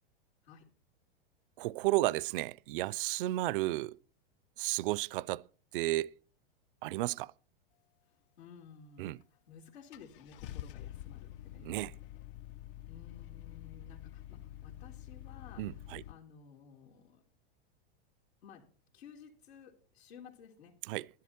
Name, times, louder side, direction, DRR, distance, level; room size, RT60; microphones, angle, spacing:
voice 1, 1.6-4.0 4.6-5.4 5.7-6.1 6.8-7.3 9.0-9.2 11.6-11.9 15.6-16.0 20.9-21.1, right 18 dB, 60° right, 0.5 m, -33 dB
voice 2, 8.4-11.7 12.9-15.6 16.1-17.2 18.4-18.6 18.9-20.7, left 7 dB, 90° left, 3.3 m, -55 dB
Car / Engine starting, 9.2-9.3 9.9-16.1, left 12 dB, 60° left, 0.7 m, -47 dB
12.5 x 11.5 x 4.3 m
supercardioid pair, 135°, 30 cm